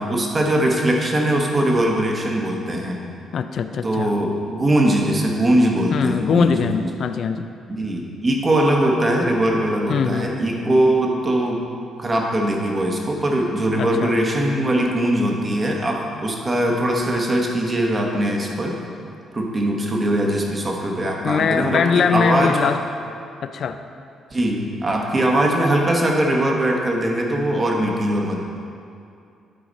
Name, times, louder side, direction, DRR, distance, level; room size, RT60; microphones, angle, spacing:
voice 1, 0.0-3.0 3.8-6.9 7.7-11.7 12.0-18.8 19.3-22.8 24.3-28.4, right 1 dB, 30° right, 0 dB, 1.3 m, -21 dB
voice 2, 3.3-4.1 5.9-7.5 9.9-10.3 13.8-14.2 21.2-22.8 23.4-23.8, left 6 dB, 60° left, 9 dB, 0.4 m, -21 dB
11.5 x 4.9 x 4.1 m, 2.5 s
cardioid pair, 90°, 0 cm